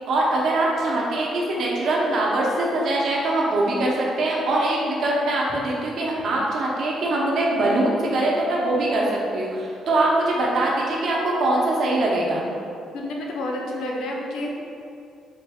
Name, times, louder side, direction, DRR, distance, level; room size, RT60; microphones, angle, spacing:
voice 1, 0.1-12.4, right 2 dB, 65° right, -3 dB, 0.7 m, -22 dB
voice 2, 1.6-1.9 12.9-14.5, left 1 dB, 85° left, -1 dB, 0.5 m, -30 dB
3.9 x 2.2 x 3.4 m, 2.6 s
cardioid pair, 90°, 0 cm